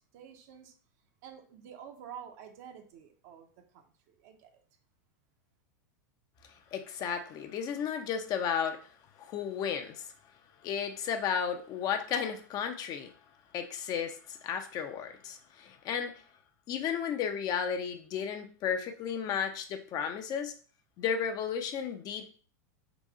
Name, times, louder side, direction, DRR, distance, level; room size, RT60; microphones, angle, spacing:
voice 1, 0.1-0.7 1.2-4.5, right 8 dB, 60° right, 0.9 m, -49 dB
voice 2, 6.7-8.9 9.2-10.1 10.6-13.1 13.5-16.2 16.7-20.5 21.0-22.3, left 7 dB, 40° left, 0.7 m, -33 dB
4.0 x 2.7 x 4.7 m
hypercardioid pair, 115°, 10 cm